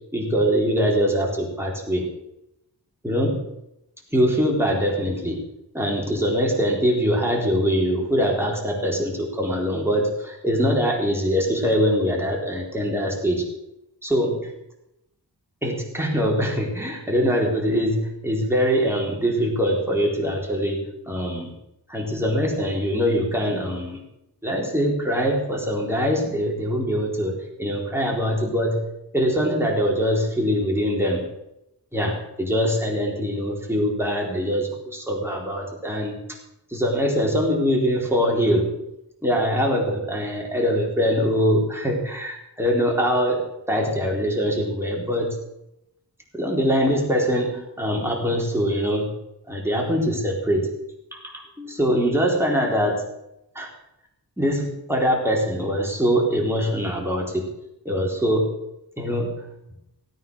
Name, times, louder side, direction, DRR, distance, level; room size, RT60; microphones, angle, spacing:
voice 1, 0.1-2.1 3.0-3.5 4.1-5.4 5.7-13.4 14.0-14.5 15.6-21.5 21.9-24.0 24.4-28.8 29.1-31.2 31.9-36.2 36.7-38.7 39.2-45.3 46.3-49.1 49.5-50.7 51.1-53.1 53.5-53.7 54.4-57.5 57.8-58.5 59.0-59.5, equal, 5° right, -1 dB, 4.2 m, -23 dB
17.0 x 9.4 x 6.5 m, 0.86 s
wide cardioid pair, 70°, 39 cm